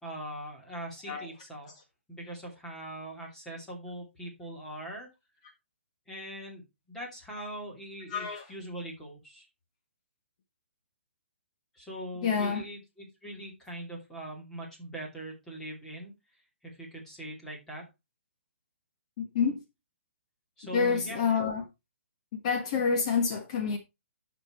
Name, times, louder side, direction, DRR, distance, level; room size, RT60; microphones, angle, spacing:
voice 1, 0.0-1.7 2.1-5.1 6.1-9.5 11.8-16.1 16.6-17.9 20.6-21.3, right 1 dB, 5° left, 2.8 m, -41 dB
voice 2, 8.1-8.4 12.2-12.6 19.2-19.6 20.7-21.6 22.3-23.8, left 6 dB, 30° left, 1.5 m, -28 dB
10.0 x 6.1 x 4.4 m
hypercardioid pair, 170°, 7 cm